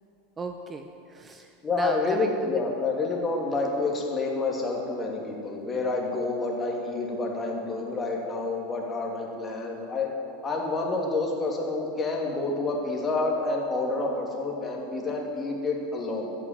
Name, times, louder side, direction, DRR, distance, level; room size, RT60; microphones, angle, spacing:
voice 1, 0.4-2.7, right 3 dB, 20° right, 6 dB, 0.7 m, -36 dB
voice 2, 1.6-10.1 10.4-16.3, left 3 dB, 20° left, -1 dB, 2.7 m, -28 dB
14.5 x 6.6 x 9.0 m, 2.7 s
figure-of-eight pair, 85°, 0 cm